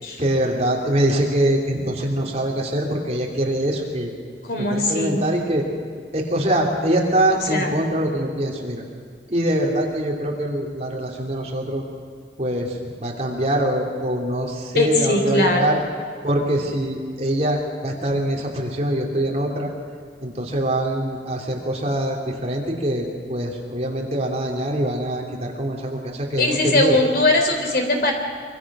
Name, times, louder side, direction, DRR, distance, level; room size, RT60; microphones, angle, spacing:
voice 1, 0.2-4.1 4.6-5.7 6.1-8.8 9.3-11.8 12.4-15.8 16.2-19.7 20.2-27.0, right 1 dB, 35° right, 0 dB, 3.2 m, -23 dB
voice 2, 4.5-5.2 7.5-7.7 14.7-15.7 26.4-28.1, left 2 dB, 55° left, 3 dB, 3.8 m, -20 dB
25.0 x 24.5 x 6.3 m, 2.1 s
head